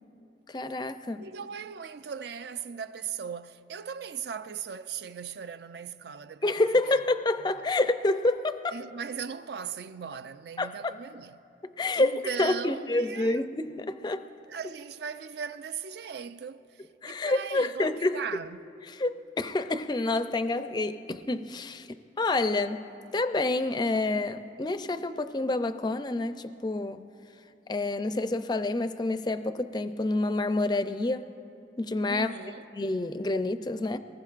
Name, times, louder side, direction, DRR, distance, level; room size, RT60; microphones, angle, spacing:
voice 1, 0.5-1.3 6.4-8.8 10.6-11.0 11.8-14.2 17.0-18.2 18.9-22.8 23.1-27.1 27.7-31.3 31.8-32.3 32.7-34.0, left 2 dB, 25° left, 0.4 m, -28 dB
voice 2, 1.2-7.0 8.7-11.4 11.9-13.4 14.5-18.6 32.1-32.7, right 6 dB, 60° right, 0.4 m, -38 dB
24.0 x 19.5 x 2.4 m
head